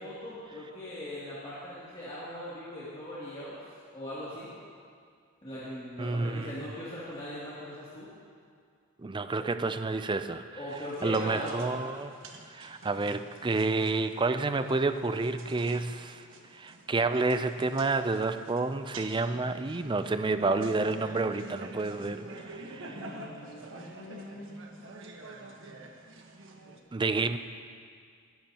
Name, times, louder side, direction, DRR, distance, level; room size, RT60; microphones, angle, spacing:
voice 1, 0.0-3.6 3.9-4.5 5.4-8.1 9.3-9.4 10.6-11.8 22.9-24.6, equal, 25° left, -11 dB, 2.6 m, -40 dB
voice 2, 6.0-6.5 9.0-10.4 11.0-12.1 12.5-16.2 16.5-23.0 26.9-27.4, right 3 dB, 20° right, 10 dB, 0.4 m, -29 dB
sound 1, 10.7-26.8, right 2 dB, 60° right, 1.3 m, -48 dB
22.0 x 12.0 x 2.9 m, 2.2 s
head